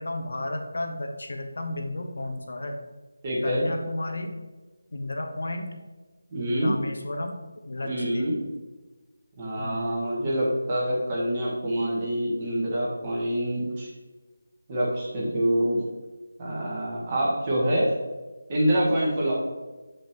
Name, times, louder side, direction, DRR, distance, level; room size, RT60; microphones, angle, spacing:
voice 1, 0.0-2.8 3.4-4.4 4.9-5.8 6.5-7.4 7.6-8.3 9.6-9.9, left 1 dB, 65° left, 4 dB, 1.1 m, -33 dB
voice 2, 3.2-3.7 6.3-6.7 7.9-8.4 9.4-13.9 14.7-15.8 16.4-17.9 18.5-19.3, equal, 30° right, -6 dB, 1.9 m, -26 dB
7.5 x 5.3 x 2.9 m, 1.2 s
figure-of-eight pair, 165°, 0 cm